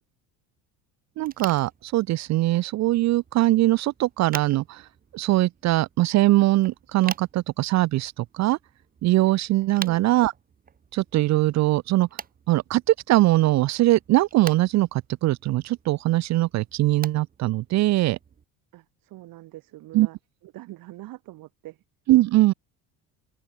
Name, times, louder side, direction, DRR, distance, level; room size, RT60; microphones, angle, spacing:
sound 1, 1.2-18.4, right 7 dB, 25° right, 0.8 m, -44 dB
voice 1, 1.2-4.9 5.1-8.6 9.0-10.3 10.9-12.1 12.5-18.2 19.9-20.1 22.1-22.5, right 17 dB, 50° right, 0.5 m, -21 dB
voice 2, 18.7-20.2 20.4-21.8, right 17 dB, 65° right, 1.9 m, -43 dB
supercardioid pair, 95°, 37 cm